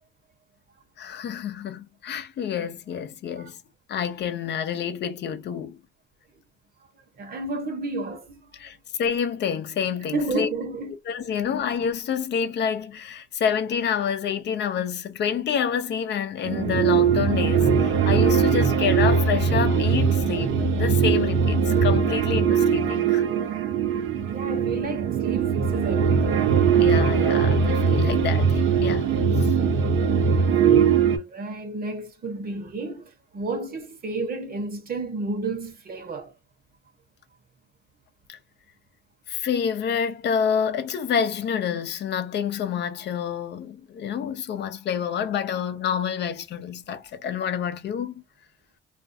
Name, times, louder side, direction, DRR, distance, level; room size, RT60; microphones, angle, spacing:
voice 1, 1.0-3.6 3.9-5.8 8.5-10.5 11.1-23.2 26.8-29.1 29.4-29.5 38.3-38.4 39.3-48.2, left 7 dB, 60° left, 0.5 m, -28 dB
voice 2, 7.2-8.5 10.1-10.9 24.3-26.4 31.0-36.3, right 3 dB, 50° right, 0.9 m, -31 dB
sound 1, 16.5-31.2, right 6 dB, 80° right, 0.6 m, -21 dB
2.4 x 2.3 x 2.5 m
cardioid pair, 90°, 20 cm